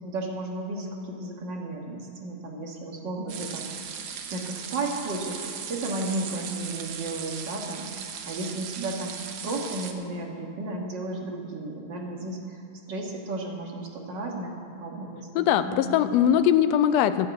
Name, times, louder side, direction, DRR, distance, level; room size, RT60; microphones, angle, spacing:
voice 1, 0.0-3.8 4.3-9.1 9.4-16.0, right 2 dB, 45° right, 0 dB, 2.0 m, -34 dB
sound 1, 3.3-9.9, right 7 dB, 65° right, 1.6 m, -38 dB
voice 2, 15.3-17.3, left 10 dB, 80° left, 11 dB, 1.6 m, -21 dB
11.0 x 11.0 x 8.3 m, 2.5 s
omnidirectional pair, 3.3 m